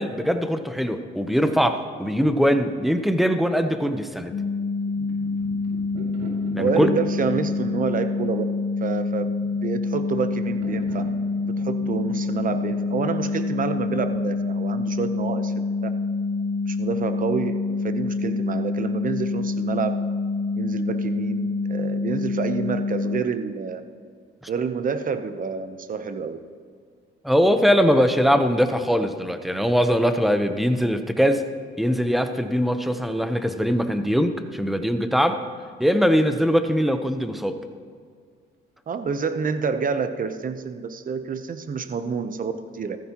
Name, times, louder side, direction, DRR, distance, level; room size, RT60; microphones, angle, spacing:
voice 1, 0.0-4.3 6.5-6.9 27.2-31.5 31.8-35.5 35.8-37.6, equal, ahead, 8 dB, 0.9 m, -21 dB
sound 1, 4.3-23.2, left 3 dB, 40° left, 0.8 m, -26 dB
sound 2, 4.6-14.3, right 1 dB, 75° right, 2.7 m, -41 dB
voice 2, 6.6-8.4 8.8-11.0 11.4-15.9 16.7-19.9 20.6-23.8 24.5-26.4 38.9-43.0, right 6 dB, 45° right, 10 dB, 0.9 m, -28 dB
16.0 x 14.0 x 3.0 m, 2.1 s
cardioid pair, 90°, 20 cm